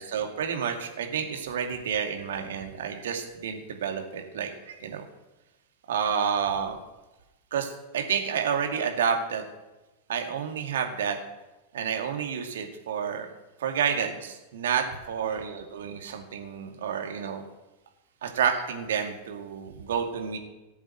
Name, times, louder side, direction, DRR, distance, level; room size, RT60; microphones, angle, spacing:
voice 1, 0.0-5.0 5.9-6.8 7.5-9.4 10.1-11.2 11.7-13.3 13.6-17.4 18.2-20.4, right 7 dB, 60° right, 4 dB, 2.4 m, -29 dB
18.5 x 7.7 x 7.8 m, 1.1 s
figure-of-eight pair, 90°, 0 cm